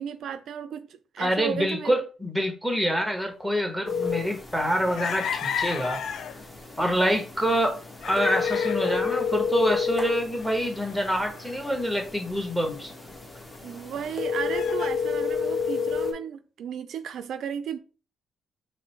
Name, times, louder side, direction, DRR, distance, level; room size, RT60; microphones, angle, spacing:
voice 1, 0.0-1.9 13.6-17.8, right 8 dB, 70° right, 0.3 m, -34 dB
voice 2, 1.2-6.0 6.8-7.8 8.0-12.9, equal, ahead, 1.2 m, -26 dB
sound 1, 3.9-16.1, left 5 dB, 15° left, 1.1 m, -31 dB
sound 2, 4.9-6.4 6.8-6.9 8.0-9.3 9.7-9.8 10.4-11.8 13.1-13.2 13.5-13.6 14.5-14.9, left 8 dB, 65° left, 0.4 m, -34 dB
4.9 x 2.1 x 4.4 m
cardioid pair, 90°, 0 cm